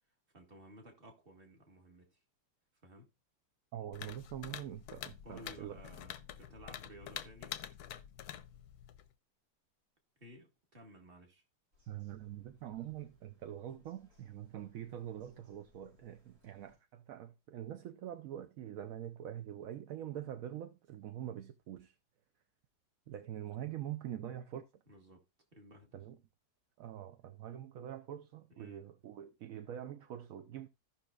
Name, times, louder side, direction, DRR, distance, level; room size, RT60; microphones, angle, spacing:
voice 1, 0.3-2.2 2.8-3.1 5.2-7.6 10.2-11.4 24.9-25.2 25.5-25.9 28.5-28.8, right 1 dB, 30° right, 1.8 m, -56 dB
voice 2, 3.7-5.8 11.9-21.9 23.1-24.8 25.9-26.2 26.8-30.7, right 11 dB, 70° right, 0.9 m, -44 dB
sound 1, 3.9-9.1, left 10 dB, 70° left, 1.0 m, -47 dB
Bird vocalization bird call bird song, 11.7-16.8, left 3 dB, 85° right, 5.9 m, -70 dB
15.5 x 5.8 x 2.4 m
omnidirectional pair, 1.9 m